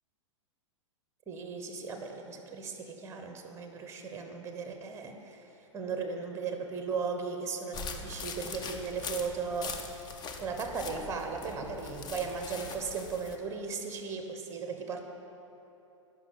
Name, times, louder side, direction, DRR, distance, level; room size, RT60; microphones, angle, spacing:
voice 1, 1.3-5.4 5.7-15.0, right 5 dB, 15° right, 4 dB, 1.1 m, -37 dB
sound 1, 7.7-13.4, left 5 dB, 25° left, 0.8 m, -42 dB
10.5 x 5.5 x 8.0 m, 3.0 s
figure-of-eight pair, 105°, 16 cm